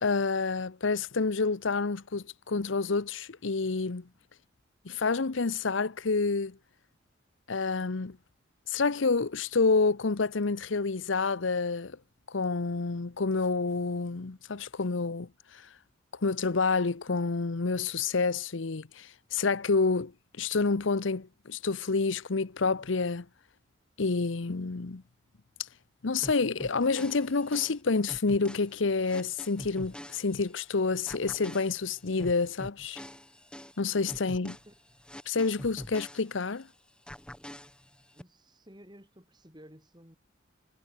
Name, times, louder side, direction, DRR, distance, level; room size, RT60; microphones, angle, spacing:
voice 1, 0.0-4.0 4.8-6.6 7.5-8.2 8.7-12.0 12.3-15.3 16.2-20.1 20.4-23.3 24.0-25.0 26.0-33.0 33.8-34.6 35.3-36.7, left 4 dB, 80° left, 0.8 m, -28 dB
sound 1, 26.2-30.7 31.1-36.7 37.1-38.2, equal, 5° left, 7.1 m, -45 dB
voice 2, 38.1-40.2, equal, 20° right, 7.4 m, -54 dB
head